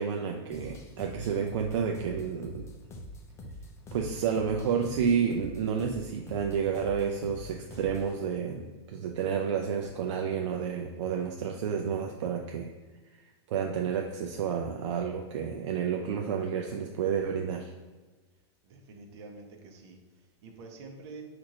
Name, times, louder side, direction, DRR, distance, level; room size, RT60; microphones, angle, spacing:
voice 1, 0.0-2.7 3.9-12.7 13.5-17.7, right 7 dB, 80° right, 2 dB, 0.5 m, -30 dB
sound 1, 0.5-8.2, equal, 20° left, 0.5 m, -45 dB
voice 2, 18.6-20.0 20.4-21.2, right 3 dB, 60° right, 2 dB, 0.9 m, -47 dB
4.4 x 2.6 x 4.2 m, 1.2 s
supercardioid pair, 150°, 15 cm